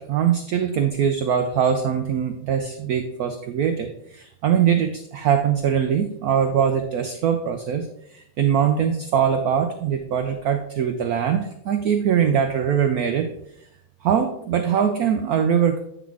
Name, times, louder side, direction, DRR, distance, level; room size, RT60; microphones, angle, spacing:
voice 1, 0.0-13.3 14.0-15.8, right 8 dB, 80° right, 7 dB, 0.8 m, -22 dB
9.3 x 4.0 x 4.6 m, 0.76 s
omnidirectional pair, 2.2 m